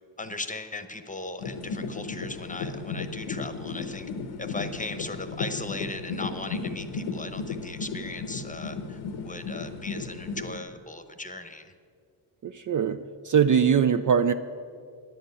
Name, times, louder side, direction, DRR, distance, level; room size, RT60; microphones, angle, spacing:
voice 1, 0.2-4.1 4.4-11.7, left 2 dB, 15° left, 9 dB, 0.9 m, -38 dB
sound 1, 1.4-10.6, left 4 dB, 90° left, 1.1 m, -35 dB
voice 2, 12.4-14.3, right 7 dB, 40° right, 10 dB, 0.4 m, -22 dB
10.5 x 7.8 x 8.3 m, 2.2 s
cardioid pair, 80°, 48 cm